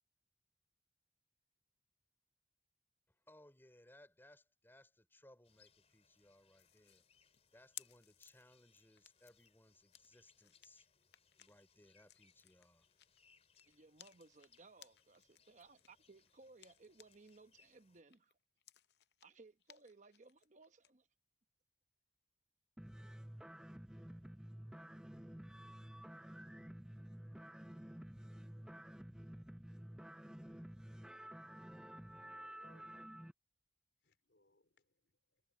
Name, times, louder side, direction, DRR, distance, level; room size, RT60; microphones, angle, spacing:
voice 1, 3.1-7.0 7.5-10.9 11.4-12.9, left 1 dB, 15° left, 3.2 m, -65 dB
sound 1, 5.4-18.0, left 6 dB, 35° left, 4.7 m, -73 dB
sound 2, 6.6-17.4 17.7-20.9, left 14 dB, 65° left, 0.6 m, -61 dB
voice 2, 13.7-18.3 19.2-21.1, right 3 dB, 45° right, 1.0 m, -62 dB
sound 3, 22.8-33.3, equal, 5° right, 0.4 m, -52 dB
voice 3, 31.8-32.9 34.0-35.4, left 2 dB, 85° left, 3.5 m, -72 dB
head